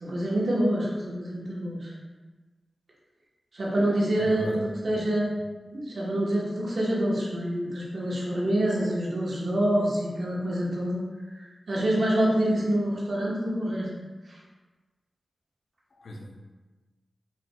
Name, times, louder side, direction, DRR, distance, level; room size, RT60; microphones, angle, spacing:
voice 1, 0.0-1.9 3.5-5.3 5.7-11.0 11.3-13.9 14.3-14.4, right 1 dB, 65° right, -5 dB, 1.0 m, -26 dB
voice 2, 4.2-5.0 16.0-16.4, left 1 dB, 80° left, 1 dB, 0.5 m, -39 dB
4.0 x 3.7 x 2.2 m, 1.3 s
cardioid pair, 55°, 0 cm